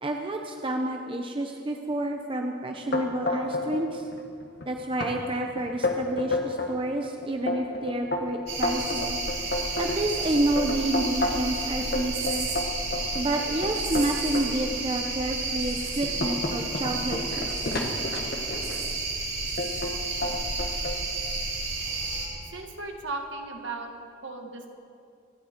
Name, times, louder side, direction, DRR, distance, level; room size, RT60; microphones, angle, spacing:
voice 1, 0.0-4.1 4.7-9.2 9.8-12.5 13.1-17.8, right 1 dB, 25° right, 2 dB, 0.8 m, -29 dB
sound 1, 2.9-3.8 4.1-4.6 5.0-5.1 5.6-6.7 7.2-11.5 11.9-14.5 15.1-15.2 15.7-18.8 19.6-19.9 20.2-21.0, left 2 dB, 50° left, 1.5 m, -30 dB
sound 2, 8.5-22.3, right 3 dB, 80° right, 3.9 m, -31 dB
voice 2, 22.5-23.9 24.2-24.7, right 3 dB, 65° right, 3 dB, 1.8 m, -36 dB
26.0 x 10.5 x 4.5 m, 2.5 s
head